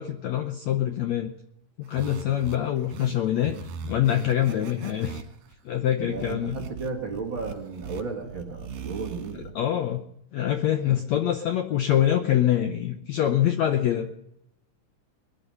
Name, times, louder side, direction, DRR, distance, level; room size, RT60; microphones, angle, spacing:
voice 1, 0.0-1.3 1.8-3.5 3.8-5.2 5.6-6.6 9.5-10.0 10.3-14.1, left 11 dB, 75° left, 6 dB, 1.7 m, -25 dB
sound 1, 1.8-9.5, right 5 dB, 75° right, 3.4 m, -40 dB
voice 2, 6.0-9.6, right 4 dB, 45° right, 1 dB, 1.9 m, -34 dB
22.0 x 10.5 x 5.5 m, 0.78 s
omnidirectional pair, 4.1 m